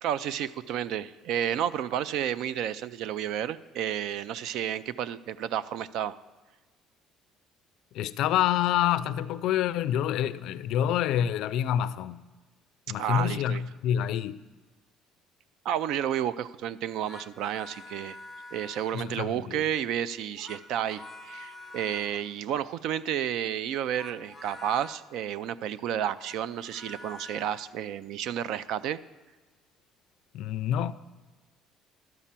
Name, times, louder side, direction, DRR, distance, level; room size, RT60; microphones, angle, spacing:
voice 1, 0.0-6.2 13.0-13.6 15.6-18.2 18.5-29.0, right 10 dB, 65° right, 0.3 m, -31 dB
voice 2, 7.9-12.2 12.9-14.4 18.9-19.6 30.3-30.9, left 10 dB, 65° left, 0.4 m, -27 dB
sound 1, 16.9-19.4 20.2-22.3 23.8-25.0 26.0-27.7, left 2 dB, 5° left, 1.0 m, -47 dB
12.0 x 5.6 x 7.3 m
cardioid pair, 165°, 0 cm